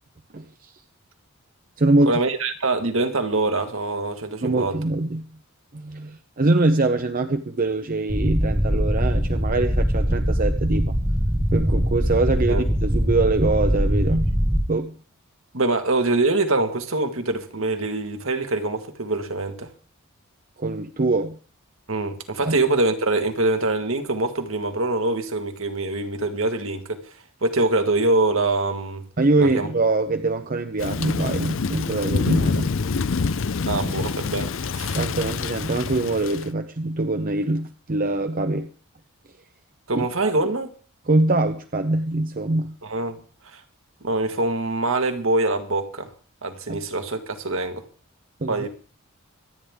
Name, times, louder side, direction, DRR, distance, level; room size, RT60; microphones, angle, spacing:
voice 1, 0.3-0.7 1.8-2.2 4.4-5.3 5.7-11.0 11.5-14.3 14.7-14.9 20.6-21.4 22.4-22.6 29.2-32.7 35.0-38.7 39.9-40.3 41.1-42.7 46.7-46.8 48.4-48.7, right 2 dB, 40° right, 0.7 m, -23 dB
voice 2, 2.1-4.8 12.5-12.6 15.5-19.7 21.9-27.0 27.4-29.0 29.4-29.7 33.7-35.0 39.9-40.7 42.8-43.2 43.5-43.6 44.0-46.1 46.4-47.8 48.5-48.7, right 2 dB, 65° right, 1.7 m, -24 dB
sound 1, 8.1-14.6, equal, 5° right, 1.1 m, -22 dB
Thunder / Rain, 30.8-36.5, left 4 dB, 60° left, 0.6 m, -26 dB
25.0 x 9.7 x 3.6 m
head